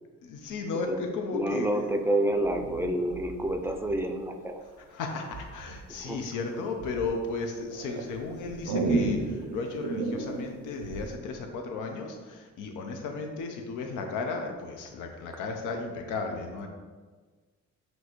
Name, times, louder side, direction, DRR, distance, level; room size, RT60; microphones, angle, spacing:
voice 1, 0.2-1.7 4.9-16.7, left 3 dB, 85° left, 3 dB, 0.7 m, -34 dB
voice 2, 1.3-4.6 6.0-6.2, right 1 dB, 10° right, 4 dB, 0.4 m, -28 dB
sound 1, 2.4-4.3 5.3-5.8 6.3-7.1 7.7-11.2, right 3 dB, 80° right, 0.6 m, -32 dB
6.1 x 2.7 x 3.0 m, 1.4 s
cardioid pair, 90°, 30 cm